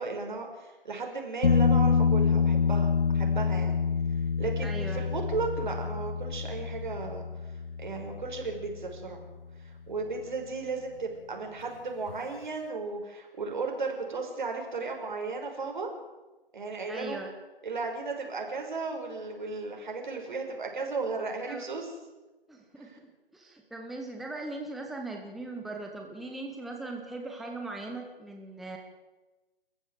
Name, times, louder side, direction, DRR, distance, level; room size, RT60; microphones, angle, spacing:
voice 1, 0.0-3.8 4.4-7.2 7.8-9.2 9.6-15.9 16.5-17.2 17.6-21.9 22.8-23.0, right 4 dB, 50° right, 2 dB, 5.5 m, -35 dB
sound 1, 1.4-9.0 12.1-12.2, left 5 dB, 70° left, 0.8 m, -27 dB
voice 2, 4.6-5.1 16.9-17.3 21.5-21.6 22.5-28.8, right 2 dB, ahead, 2 dB, 1.0 m, -39 dB
29.5 x 14.5 x 8.2 m, 1.1 s
figure-of-eight pair, 140°, 30 cm